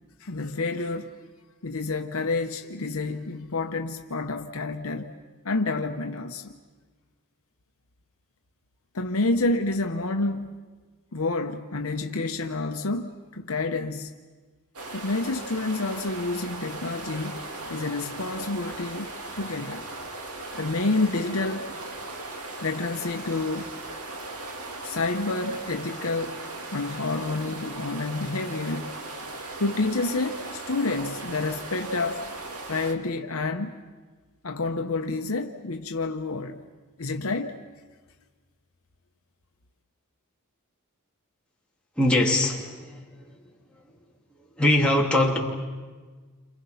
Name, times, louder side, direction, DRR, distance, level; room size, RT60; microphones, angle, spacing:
voice 1, 0.2-1.2 1.6-5.1 5.4-6.5 8.9-10.6 11.1-14.1 14.9-19.9 20.6-21.7 22.6-23.7 24.8-26.4 26.7-29.0 29.6-32.2 32.7-33.8 34.4-36.6 37.0-37.5, left 3 dB, 65° left, 1.0 m, -29 dB
sound 1, 14.7-32.9, right 2 dB, 90° right, 2.3 m, -38 dB
voice 2, 42.0-43.4 44.6-45.4, left 1 dB, 5° left, 2.8 m, -22 dB
29.5 x 27.0 x 5.7 m
head